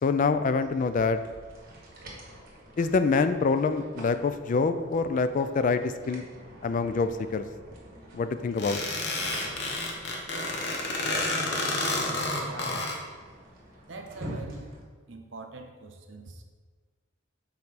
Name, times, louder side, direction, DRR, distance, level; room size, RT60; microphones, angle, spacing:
voice 1, 0.0-1.2 2.8-6.3 6.6-7.4 8.1-8.8, left 4 dB, 40° left, 10 dB, 0.3 m, -25 dB
sound 1, 0.6-14.8, equal, 45° right, 1.5 m, -47 dB
sound 2, 8.6-13.0, left 2 dB, 60° left, 1.0 m, -30 dB
voice 2, 12.4-12.9 13.9-14.7 15.1-16.4, right 3 dB, 65° right, 5 dB, 0.7 m, -43 dB
6.6 x 4.1 x 4.1 m, 1.5 s
head